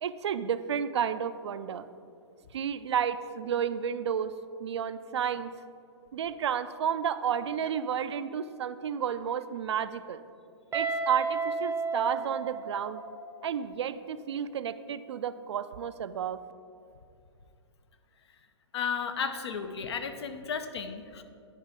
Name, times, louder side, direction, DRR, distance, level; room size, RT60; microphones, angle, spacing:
voice 1, 0.0-1.9 2.5-4.3 4.6-5.5 6.1-10.2 10.7-13.0 13.4-16.4, right 8 dB, 70° right, 13 dB, 0.4 m, -31 dB
Guitar, 10.7-13.5, right 4 dB, 15° right, 0.7 m, -33 dB
voice 2, 18.7-21.2, left 6 dB, 65° left, 8 dB, 0.7 m, -34 dB
10.0 x 4.6 x 5.0 m, 2.4 s
figure-of-eight pair, 115°, 15 cm